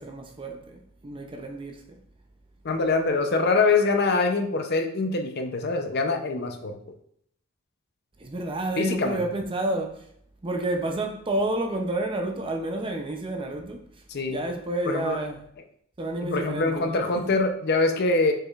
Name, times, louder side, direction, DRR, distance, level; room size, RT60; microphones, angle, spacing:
voice 1, 0.0-1.8 8.2-10.0 10.4-13.8 14.3-15.4 16.0-17.4, right 2 dB, 25° right, 0.5 m, -30 dB
voice 2, 2.6-6.8 8.8-9.2 14.1-14.4 14.9-15.2 16.2-18.3, left 3 dB, 50° left, 0.5 m, -24 dB
4.8 x 4.6 x 2.4 m
head